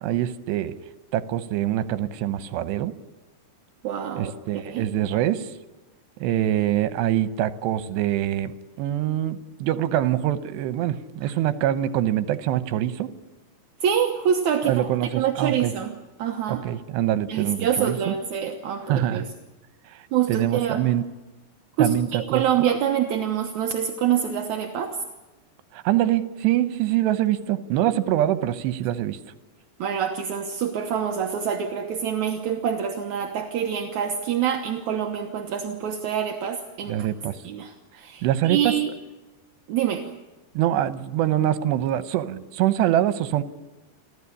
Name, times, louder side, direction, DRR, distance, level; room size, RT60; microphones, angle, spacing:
voice 1, 0.0-0.7 1.1-2.9 4.2-5.5 6.2-13.1 14.7-15.7 16.5-18.1 18.9-19.3 20.3-21.0 21.8-22.4 25.7-29.2 36.9-37.4 38.2-38.7 40.6-43.4, right 12 dB, 85° right, 13 dB, 3.1 m, -24 dB
voice 2, 3.8-4.9 11.2-11.3 13.8-14.9 15.2-15.9 16.2-16.7 17.3-19.3 20.1-20.9 21.8-25.0 29.8-37.1 37.4-38.9 39.7-40.1, right 8 dB, 65° right, 3 dB, 1.9 m, -26 dB
29.0 x 13.0 x 9.9 m, 1.1 s
omnidirectional pair, 4.9 m